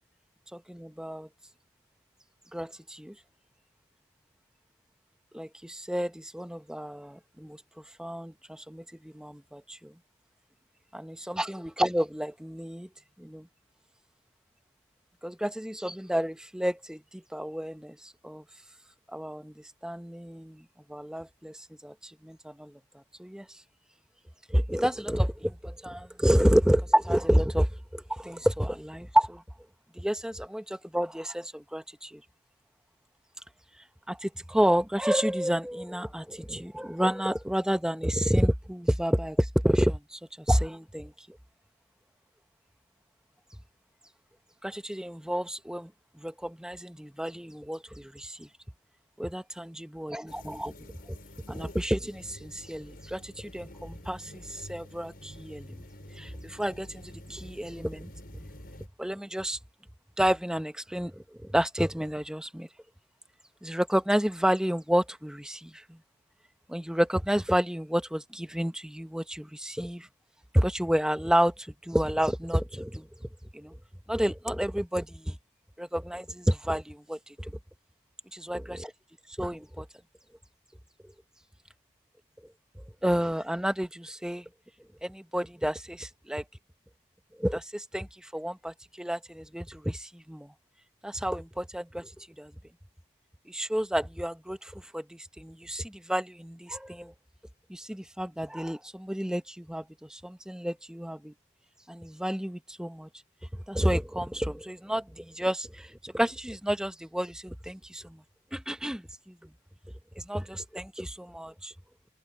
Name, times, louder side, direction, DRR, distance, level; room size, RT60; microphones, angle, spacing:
voice 1, 0.7-1.3 2.5-3.1 5.3-7.6 8.0-9.9 10.9-12.9 13.2-13.5 15.2-18.4 19.1-22.8 23.2-23.5 24.5-29.4 30.0-32.2 34.1-41.4 44.6-45.9 46.2-48.5 49.2-50.7 51.5-55.8 56.2-58.1 59.0-59.6 60.2-62.7 63.6-66.0 66.7-70.1 70.5-73.8 74.1-75.4 75.8-77.5 78.3-78.9 79.4-79.9 83.0-84.4 85.0-86.4 87.4-90.5 91.0-92.5 93.5-97.1 97.7-101.3 101.9-103.1 103.7-108.2 108.5-109.4 110.2-111.7, equal, 5° right, 0.9 m, -30 dB
sound 1, 50.3-58.9, left 1 dB, 60° left, 7.5 m, -48 dB
head